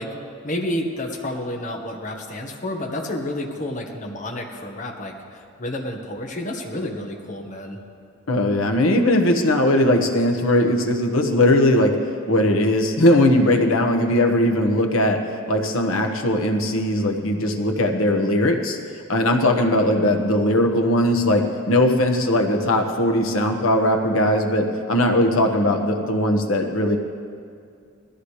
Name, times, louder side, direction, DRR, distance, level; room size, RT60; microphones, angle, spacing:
voice 1, 0.0-7.8, left 1 dB, 40° left, 1 dB, 1.4 m, -30 dB
voice 2, 8.3-12.0 12.3-15.2 15.5-18.8 19.1-27.0, left 1 dB, 75° left, 3 dB, 1.3 m, -19 dB
20.0 x 14.0 x 3.3 m, 2.3 s
head